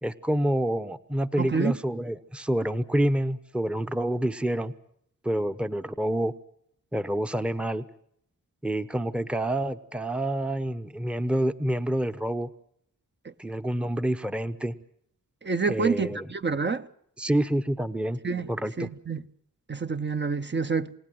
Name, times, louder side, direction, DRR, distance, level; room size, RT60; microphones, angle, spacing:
voice 1, 0.0-4.7 5.2-6.3 6.9-7.8 8.6-12.5 13.4-14.7 15.7-16.3 17.2-18.2 18.5-18.9, right 1 dB, 5° right, 0.9 m, -27 dB
voice 2, 1.4-1.7 13.2-13.3 15.4-16.9 18.2-18.5 18.8-19.3 19.7-20.9, right 5 dB, 30° right, 0.8 m, -28 dB
28.5 x 17.5 x 7.7 m
wide cardioid pair, 95°, 34 cm